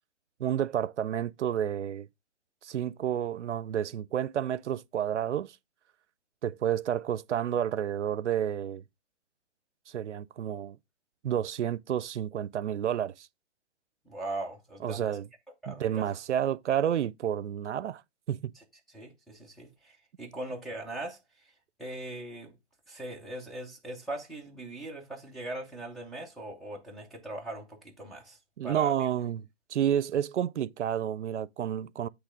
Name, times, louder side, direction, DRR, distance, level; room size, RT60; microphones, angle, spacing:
voice 1, 0.4-2.1 2.6-5.5 6.4-8.8 9.9-10.8 11.2-13.3 14.8-15.3 15.7-18.0 18.3-18.5 28.6-29.4 29.7-32.1, right 10 dB, 85° right, 0.5 m, -30 dB
voice 2, 14.1-15.1 15.6-16.1 18.6-18.7 18.9-21.2 21.8-22.5 22.9-28.9, right 2 dB, ahead, 0.6 m, -40 dB
8.2 x 3.2 x 4.9 m
hypercardioid pair, 150°, 35 cm